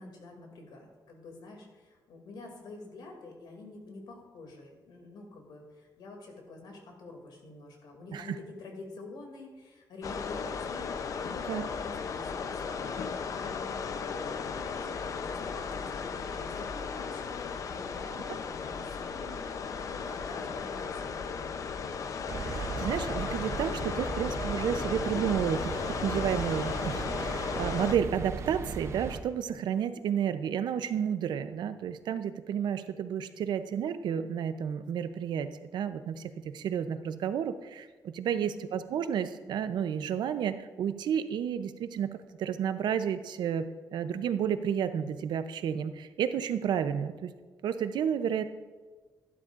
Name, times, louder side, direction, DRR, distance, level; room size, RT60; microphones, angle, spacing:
voice 1, 0.0-14.1 14.6-21.9 38.3-38.7, left 2 dB, 85° left, 1 dB, 2.5 m, -47 dB
sound 1, 10.0-27.9, left 5 dB, 50° left, 0.6 m, -35 dB
sound 2, 22.3-29.2, right 5 dB, 40° right, 0.6 m, -37 dB
voice 2, 22.4-37.9 38.1-42.1 42.4-43.7 43.9-47.3 47.6-48.4, right 8 dB, 80° right, 11 dB, 0.6 m, -31 dB
12.5 x 12.0 x 2.5 m, 1.4 s
wide cardioid pair, 175°, 7 cm